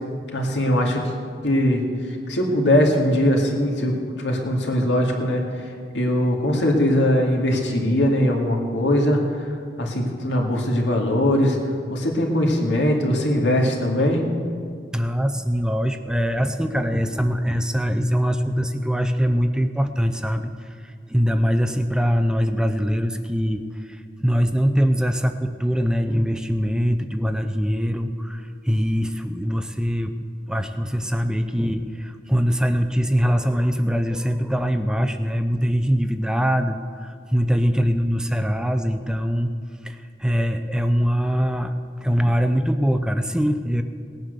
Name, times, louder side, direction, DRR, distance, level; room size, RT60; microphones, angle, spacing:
voice 1, 0.3-1.0 1.4-11.6 11.9-14.2, left 1 dB, 80° left, 0 dB, 2.3 m, -21 dB
voice 2, 14.9-30.2 30.5-39.5 39.8-41.8 42.0-43.8, equal, 5° right, 8 dB, 0.5 m, -22 dB
18.0 x 9.2 x 6.7 m, 2.2 s
head